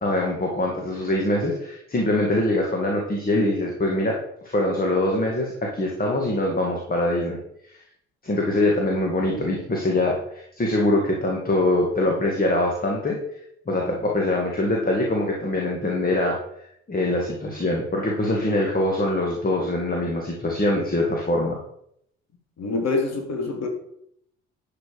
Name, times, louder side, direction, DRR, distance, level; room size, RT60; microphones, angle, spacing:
voice 1, 0.0-4.2 4.4-7.4 7.7-7.8 8.2-13.2 13.7-16.4 16.9-21.6, left 1 dB, 25° left, -1 dB, 2.4 m, -23 dB
voice 2, 8.9-9.5 22.6-23.7, left 3 dB, 45° left, 3 dB, 2.7 m, -27 dB
12.0 x 5.7 x 5.0 m, 0.71 s
figure-of-eight pair, 50°, 36 cm